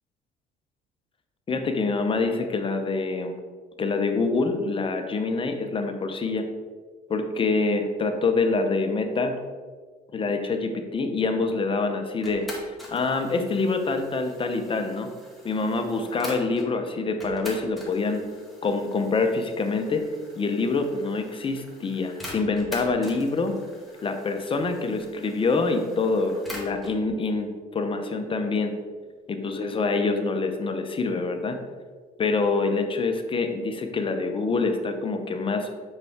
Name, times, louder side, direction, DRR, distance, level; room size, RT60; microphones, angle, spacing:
voice 1, 1.5-3.3 3.8-6.5 7.1-9.4 10.1-15.1 15.4-18.2 18.6-20.1 20.4-23.5 24.0-28.7 29.3-31.6 32.2-35.7, left 3 dB, 30° left, 6 dB, 0.7 m, -26 dB
sound 1, 12.2-16.7 17.2-27.0, left 1 dB, ahead, 1.9 m, -44 dB
6.6 x 5.7 x 3.6 m, 1.6 s
cardioid pair, 110°, 17 cm